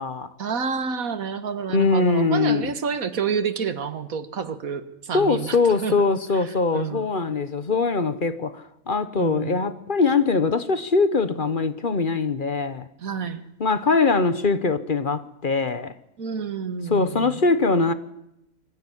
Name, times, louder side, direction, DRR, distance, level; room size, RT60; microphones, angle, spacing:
voice 1, 0.4-5.6 5.8-5.9 6.3-7.1 9.2-9.7 13.0-13.4 16.2-17.4, right 6 dB, 90° right, 1.9 m, -29 dB
voice 2, 1.7-2.7 5.1-12.8 13.6-15.9 16.9-17.9, left 4 dB, 40° left, 1.1 m, -22 dB
22.5 x 15.0 x 9.9 m
omnidirectional pair, 1.4 m